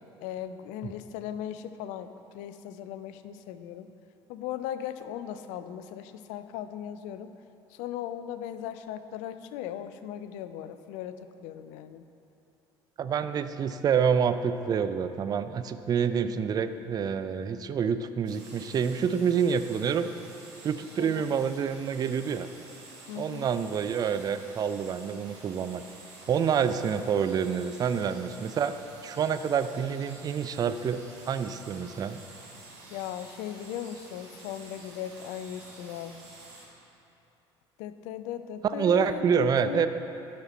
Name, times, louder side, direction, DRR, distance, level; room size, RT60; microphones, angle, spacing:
voice 1, 0.2-2.1 2.3-3.9 4.3-7.3 7.7-12.1 21.0-21.3 23.1-23.5 32.9-36.2 37.8-39.9, left 10 dB, 55° left, 11 dB, 0.4 m, -38 dB
voice 2, 13.0-20.1 20.6-22.5 23.2-25.8 26.3-28.7 29.0-31.0 31.3-32.2 38.6-39.9, right 7 dB, 25° right, 11 dB, 0.3 m, -27 dB
sound 1, 18.2-36.6, right 3 dB, 65° right, 1.4 m, -49 dB
11.5 x 4.3 x 4.1 m, 2.8 s
figure-of-eight pair, 60°, 14 cm